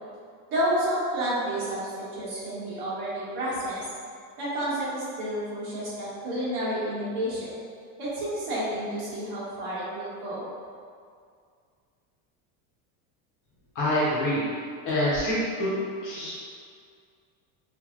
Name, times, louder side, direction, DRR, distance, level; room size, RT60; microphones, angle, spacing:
voice 1, 0.5-3.8 4.4-7.5 8.0-10.5, right 1 dB, 45° right, -9 dB, 1.3 m, -30 dB
voice 2, 13.7-14.5 14.8-15.7 16.0-16.3, equal, 40° left, -8 dB, 1.1 m, -26 dB
3.1 x 2.7 x 2.5 m, 2.2 s
supercardioid pair, 145°, 46 cm